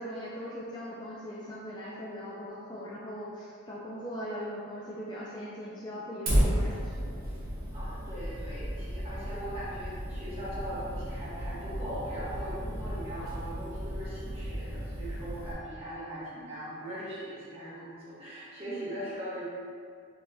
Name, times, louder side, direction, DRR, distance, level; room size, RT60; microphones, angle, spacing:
voice 1, 0.0-7.2, equal, 20° left, -6 dB, 0.4 m, -40 dB
Fire, 6.3-15.5, equal, 45° right, 1.2 m, -33 dB
voice 2, 7.7-19.4, right 1 dB, 25° right, -11 dB, 1.5 m, -40 dB
4.0 x 3.2 x 3.4 m, 2.1 s
head